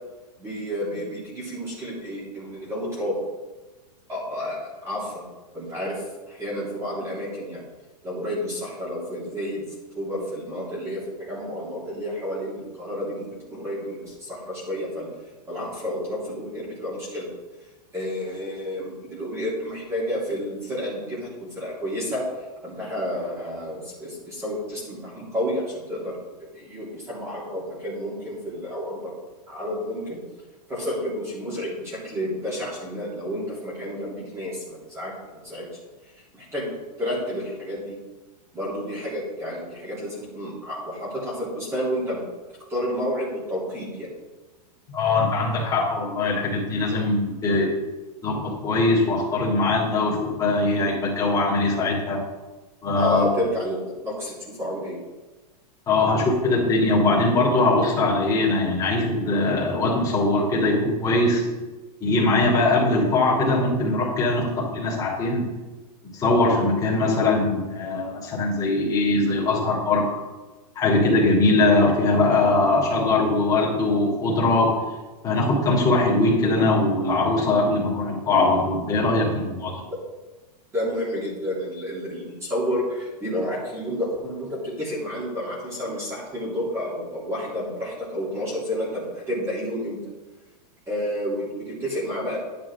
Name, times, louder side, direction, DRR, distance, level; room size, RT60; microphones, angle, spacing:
voice 1, 0.4-3.2 4.1-5.2 5.5-7.6 8.0-9.6 9.9-15.1 15.5-17.3 17.9-22.2 22.6-29.1 29.5-30.2 30.7-35.1 35.4-35.7 36.3-36.7 37.0-38.0 38.5-42.2 42.7-44.1 52.9-53.8 54.0-55.0 80.7-90.0 90.9-92.4, equal, 15° right, -7 dB, 3.5 m, -30 dB
voice 2, 44.9-47.7 48.2-52.2 52.8-53.2 55.9-61.4 62.0-65.5 66.1-70.1 70.7-74.8 75.2-79.7, left 2 dB, 15° left, -4 dB, 3.3 m, -21 dB
11.0 x 9.8 x 3.8 m, 1.2 s
supercardioid pair, 160°, 21 cm